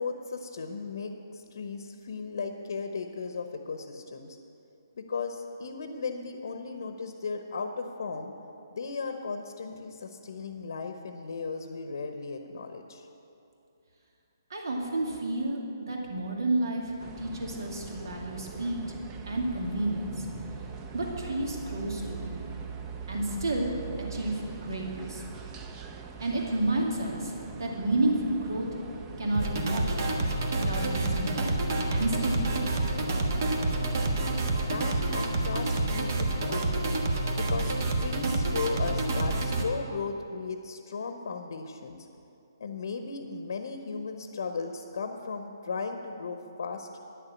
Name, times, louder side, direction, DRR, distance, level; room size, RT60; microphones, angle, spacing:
voice 1, 0.0-4.4 5.0-8.3 8.7-13.1 34.7-36.9 37.4-42.1 42.6-47.0, left 4 dB, 65° left, 6 dB, 0.8 m, -36 dB
voice 2, 14.5-18.8 19.3-20.3 20.9-22.5 23.1-23.7 24.1-25.2 26.2-28.7 29.2-30.1 30.5-31.5 31.9-32.7, right 1 dB, 75° right, -1 dB, 2.3 m, -31 dB
sound 1, 17.0-35.2, right 6 dB, 15° right, 0.6 m, -42 dB
sound 2, 29.3-39.6, right 2 dB, 50° right, 1.3 m, -28 dB
10.0 x 6.9 x 8.6 m, 2.7 s
hypercardioid pair, 155°, 2 cm